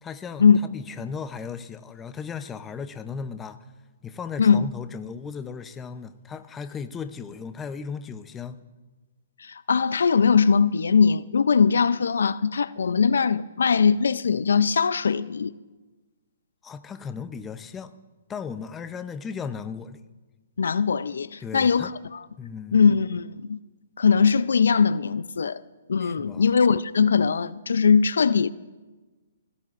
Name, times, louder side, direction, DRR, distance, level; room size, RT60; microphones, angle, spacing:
voice 1, 0.0-0.4 0.7-3.6 4.0-8.6 16.6-17.9 18.3-20.0 21.4-21.9 22.4-22.8 26.0-26.5, left 6 dB, 15° left, 0.7 m, -36 dB
voice 2, 9.4-15.5 20.6-22.2 22.7-23.6 24.0-25.6 25.9-28.5, left 6 dB, 80° left, 0.5 m, -21 dB
26.0 x 17.0 x 2.6 m
hypercardioid pair, 150°, 0 cm